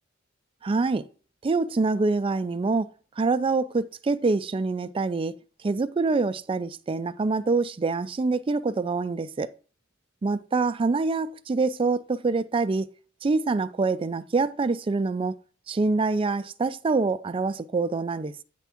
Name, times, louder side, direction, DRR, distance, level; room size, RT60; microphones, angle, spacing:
voice 1, 0.6-1.1 1.4-2.9 3.2-5.4 5.6-9.5 10.2-12.9 13.2-15.4 15.7-18.3, right 3 dB, 25° right, 0.3 m, -25 dB
9.2 x 3.5 x 5.7 m
head